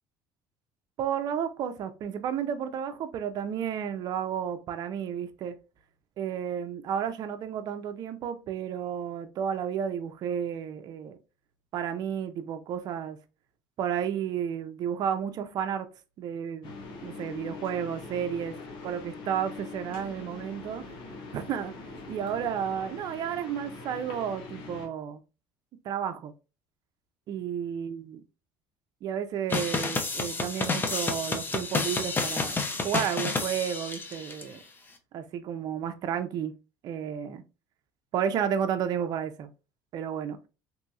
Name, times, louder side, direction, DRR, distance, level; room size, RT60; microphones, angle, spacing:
voice 1, 1.0-5.6 6.2-11.2 11.7-13.2 13.8-15.9 16.2-16.7 17.0-18.6 18.8-20.8 21.3-21.7 22.1-25.2 25.8-26.3 27.3-28.1 29.0-34.6 35.1-36.5 36.8-37.4 38.1-39.5 39.9-40.4, right 8 dB, 55° right, 0.4 m, -32 dB
sound 1, 16.6-24.9, left 3 dB, 65° left, 0.9 m, -42 dB
sound 2, 29.5-34.4, left 3 dB, 25° left, 0.5 m, -30 dB
3.0 x 2.7 x 2.3 m
supercardioid pair, 95°, 8 cm